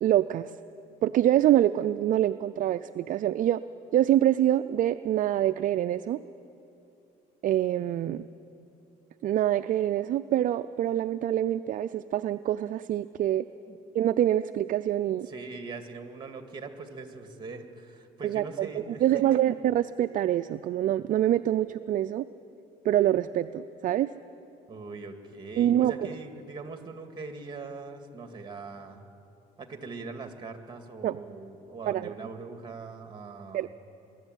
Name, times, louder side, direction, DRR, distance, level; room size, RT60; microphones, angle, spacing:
voice 1, 0.0-0.5 1.0-3.6 3.9-6.2 7.4-8.2 9.2-13.5 13.9-15.3 18.2-18.7 19.0-22.3 22.8-24.1 25.6-26.1 31.0-31.2 31.9-32.1 33.5-33.7, right 12 dB, 50° right, 11 dB, 0.4 m, -25 dB
voice 2, 15.3-19.4 24.7-29.0 29.6-33.7, right 4 dB, 25° right, 6 dB, 2.1 m, -41 dB
23.0 x 12.5 x 9.2 m, 2.8 s
cardioid pair, 110°, 17 cm